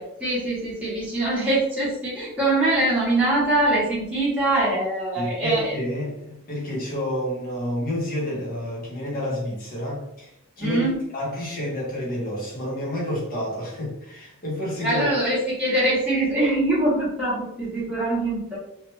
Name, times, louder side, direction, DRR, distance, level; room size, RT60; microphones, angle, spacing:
voice 1, 0.0-5.7 10.6-11.0 14.8-18.6, right 1 dB, 5° right, -9 dB, 1.0 m, -23 dB
voice 2, 5.2-10.3 10.6-10.9 11.1-15.1, left 1 dB, 45° left, -4 dB, 1.1 m, -29 dB
3.0 x 2.4 x 3.1 m, 0.80 s
head